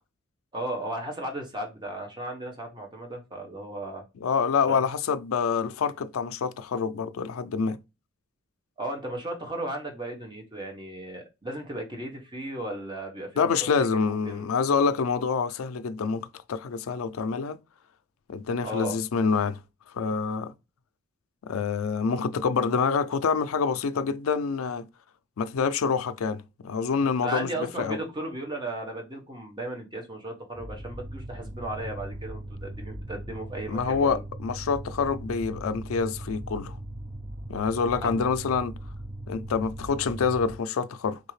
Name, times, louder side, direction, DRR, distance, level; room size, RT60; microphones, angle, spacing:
voice 1, 0.5-4.0 4.7-4.9 8.8-13.5 13.8-14.4 18.6-19.0 27.2-34.2 38.0-38.1, right 1 dB, 20° right, 1.0 m, -35 dB
voice 2, 4.2-7.8 13.4-17.6 18.3-19.6 19.9-20.5 21.4-24.9 25.4-27.5 27.8-28.0 33.7-36.8 37.5-38.8 39.3-41.2, left 5 dB, 75° left, 0.4 m, -26 dB
sound 1, 30.6-40.5, right 1 dB, ahead, 0.4 m, -39 dB
3.6 x 2.8 x 3.1 m
head